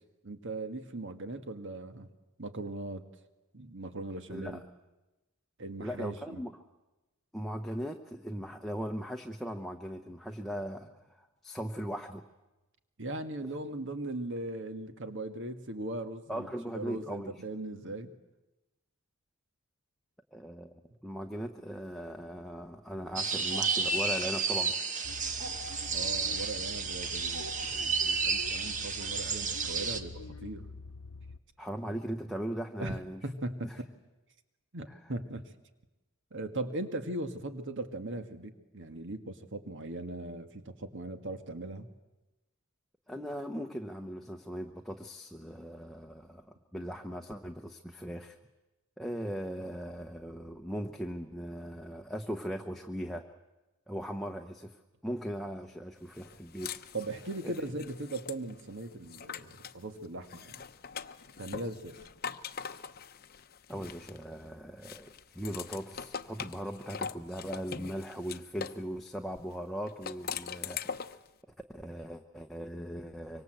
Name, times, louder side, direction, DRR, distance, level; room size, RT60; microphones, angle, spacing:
voice 1, 0.2-2.1 2.4-3.0 3.5-4.6 5.6-6.4 13.0-18.1 25.9-30.7 32.8-33.7 34.7-35.4 36.3-41.9 56.9-60.7 61.4-62.1, right 2 dB, 55° right, 8 dB, 1.8 m, -39 dB
voice 2, 4.3-4.6 5.8-6.5 7.3-12.2 16.3-17.3 20.3-20.7 21.0-24.8 31.6-33.2 33.6-33.8 43.1-48.3 49.0-53.2 53.9-54.8 55.0-56.7 63.7-71.0 71.7-73.4, equal, ahead, 3 dB, 1.0 m, -39 dB
sound 1, 23.2-30.0, right 4 dB, 35° right, 1.5 m, -32 dB
sound 2, 25.0-31.4, left 3 dB, 70° left, 0.9 m, -46 dB
sound 3, 56.2-59.8 60.2-64.4 64.8-68.8 69.9-71.3, left 7 dB, 45° left, 0.8 m, -42 dB
25.0 x 24.5 x 7.9 m, 1.1 s
head